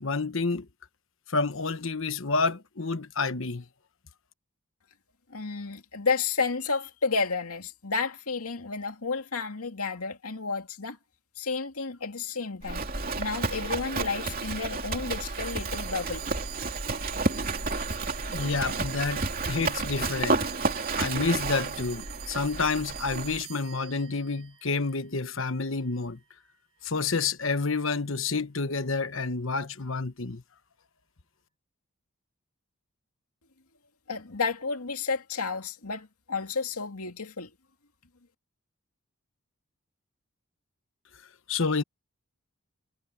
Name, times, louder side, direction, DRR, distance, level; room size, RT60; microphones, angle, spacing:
voice 1, 0.0-0.7 1.3-3.6 18.3-20.5 21.0-26.2 26.8-30.4 41.5-41.8, left 4 dB, 60° left, 1.2 m, -29 dB
voice 2, 5.3-11.0 11.4-12.9 13.2-16.2 34.1-37.5, left 4 dB, 90° left, 2.3 m, -31 dB
Livestock farm animals working animals, 12.6-23.4, right 3 dB, 40° right, 2.9 m, -31 dB
sound 1, 15.3-26.0, right 16 dB, 65° right, 3.5 m, -45 dB
head